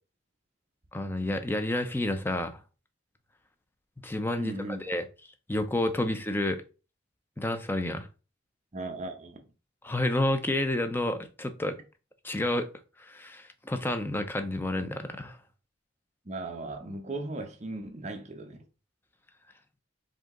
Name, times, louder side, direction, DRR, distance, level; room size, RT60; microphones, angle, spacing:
voice 1, 0.9-2.6 4.0-4.5 4.8-5.0 5.5-6.6 7.4-8.1 9.8-11.8 12.2-12.7 13.0-15.4, left 1 dB, 10° left, 0.5 m, -29 dB
voice 2, 4.4-4.8 6.0-6.1 8.7-9.4 16.3-18.6, right 2 dB, 35° right, 0.7 m, -37 dB
5.1 x 2.8 x 3.7 m
head